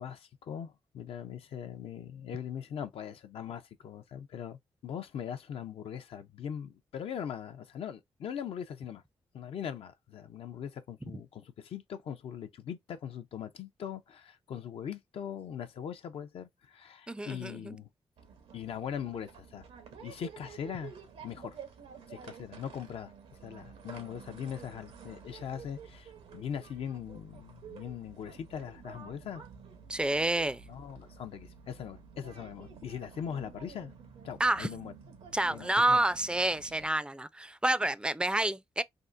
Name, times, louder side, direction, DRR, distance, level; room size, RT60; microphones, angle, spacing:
voice 1, 0.0-9.0 9.3-17.9 18.5-19.7 20.0-20.9 21.2-21.6 22.1-23.1 23.4-29.4 30.7-33.9 34.2-34.9 35.5-36.0, left 8 dB, 70° left, 0.5 m, -41 dB
voice 2, 17.1-17.8 29.9-30.6 34.4-34.7 35.3-38.8, right 1 dB, 10° right, 0.3 m, -29 dB
sound 1, 18.2-36.9, right 6 dB, 85° right, 0.8 m, -51 dB
3.6 x 2.1 x 2.4 m
cardioid pair, 60°, 10 cm